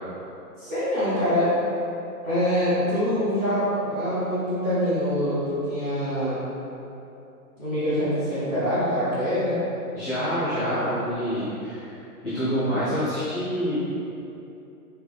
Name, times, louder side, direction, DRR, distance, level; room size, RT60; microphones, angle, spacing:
voice 1, 0.6-1.5 2.2-6.4 7.6-9.6, equal, 15° right, -14 dB, 0.9 m, -24 dB
voice 2, 9.9-13.8, equal, 15° left, -14 dB, 0.8 m, -27 dB
3.3 x 3.2 x 2.3 m, 2.9 s
hypercardioid pair, 150°, 46 cm